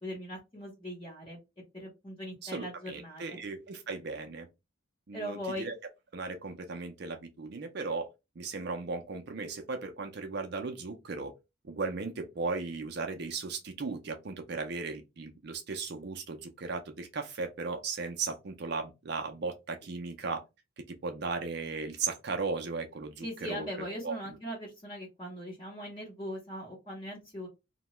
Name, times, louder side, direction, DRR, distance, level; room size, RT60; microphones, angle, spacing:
voice 1, 0.0-1.4 1.7-3.4 5.1-5.6 23.2-27.5, equal, 25° left, 0.8 m, -40 dB
voice 2, 2.4-4.5 5.1-5.8 6.1-8.1 8.4-11.3 11.6-20.4 20.9-23.7 24.0-24.1, right 4 dB, 50° right, 0.5 m, -36 dB
2.8 x 2.2 x 3.0 m
head